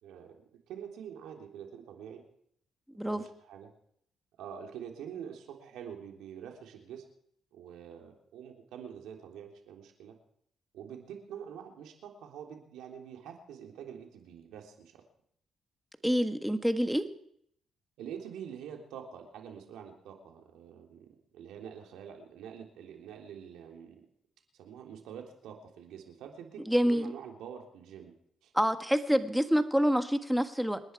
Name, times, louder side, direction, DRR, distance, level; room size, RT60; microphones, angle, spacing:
voice 1, 0.0-0.3 0.7-2.2 3.0-3.7 4.4-7.0 7.5-10.2 10.7-15.0 18.0-24.1 24.5-28.1 28.4-28.5, right 8 dB, 85° right, 2 dB, 3.5 m, -46 dB
voice 2, 16.0-17.0 26.7-27.1 28.5-30.8, equal, ahead, 8 dB, 1.5 m, -27 dB
27.5 x 10.5 x 4.7 m, 0.68 s
cardioid pair, 90°, 0 cm